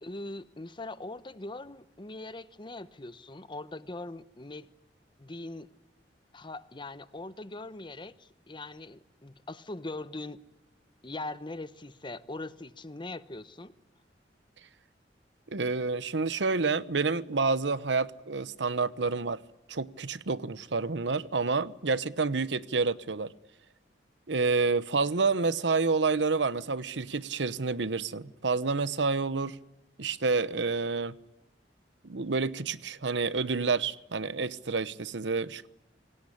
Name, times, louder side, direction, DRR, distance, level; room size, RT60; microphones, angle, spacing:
voice 1, 0.0-4.7 5.2-5.7 6.3-10.4 11.0-13.7, left 2 dB, 25° left, 1.0 m, -41 dB
voice 2, 15.5-19.4 19.7-23.3 24.3-29.6 30.0-31.2 32.0-35.7, right 4 dB, 85° right, 1.0 m, -29 dB
25.5 x 18.5 x 10.0 m
head